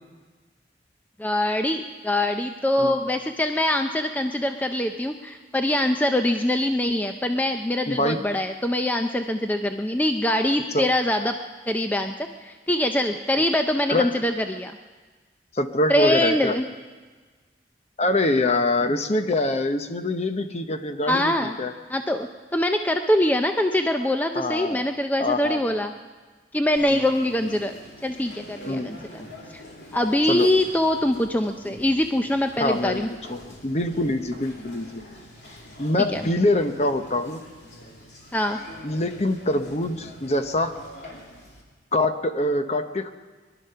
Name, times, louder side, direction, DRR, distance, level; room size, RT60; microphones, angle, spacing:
voice 1, 1.2-11.3 11.7-12.1 12.4-14.7 15.9-16.7 21.1-21.5 21.9-25.9 26.5-27.7 28.0-29.3 29.5-29.6 29.9-33.1 36.1-36.2 38.3-38.6, left 1 dB, 10° left, 6 dB, 0.5 m, -23 dB
voice 2, 7.9-8.2 10.7-10.9 13.9-14.2 15.5-16.6 18.0-21.7 24.3-24.8 25.2-25.8 26.9-27.1 28.7-28.9 30.3-30.5 32.6-35.0 35.8-37.4 38.8-40.8 41.9-43.1, left 1 dB, 40° left, 8 dB, 0.9 m, -24 dB
Conversation, 26.8-41.6, left 1 dB, 70° left, 2.7 m, -45 dB
21.5 x 12.0 x 5.6 m, 1.4 s
head